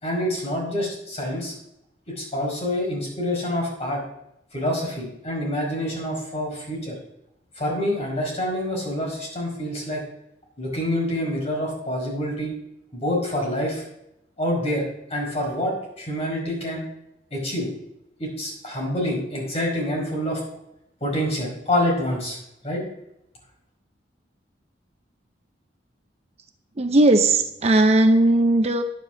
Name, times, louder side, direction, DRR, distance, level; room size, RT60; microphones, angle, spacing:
voice 1, 0.0-1.5 2.1-4.0 4.5-7.0 7.5-10.0 10.6-12.5 12.9-13.8 14.4-16.8 17.3-17.7 18.2-20.4 21.0-22.4 22.6-22.8, left 1 dB, 35° left, -2 dB, 5.0 m, -27 dB
voice 2, 26.8-28.8, right 2 dB, 35° right, 6 dB, 0.7 m, -17 dB
11.0 x 7.6 x 6.4 m, 0.82 s
head